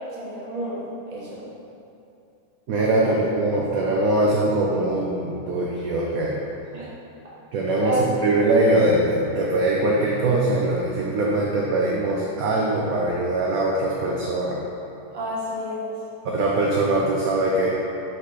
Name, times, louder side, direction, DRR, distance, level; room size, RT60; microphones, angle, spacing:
voice 1, 0.2-0.8 1.1-1.4 3.0-3.2 6.7-6.9 7.8-8.0 15.1-16.0, right 1 dB, 25° right, -7 dB, 1.0 m, -30 dB
voice 2, 2.7-6.4 7.5-14.6 16.2-17.7, right 2 dB, 70° right, -3 dB, 0.8 m, -22 dB
5.3 x 5.1 x 4.1 m, 2.7 s
omnidirectional pair, 2.1 m